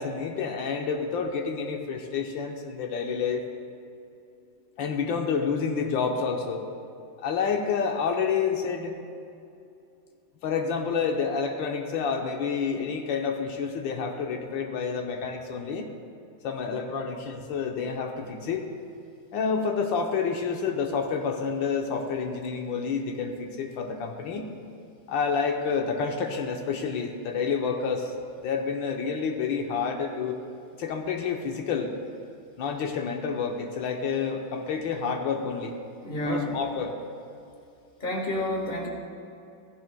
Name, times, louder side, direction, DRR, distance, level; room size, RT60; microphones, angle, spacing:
voice 1, 0.0-3.4 4.8-6.7 7.2-8.9 10.4-15.9 16.4-18.7 19.3-24.5 25.1-28.1 28.4-30.4 30.8-31.9 32.6-35.7 36.2-37.0, left 5 dB, 85° left, 2 dB, 1.6 m, -29 dB
voice 2, 36.0-36.5 38.0-38.9, left 1 dB, 25° left, -2 dB, 1.8 m, -29 dB
16.5 x 15.0 x 2.3 m, 2.5 s
omnidirectional pair, 2.0 m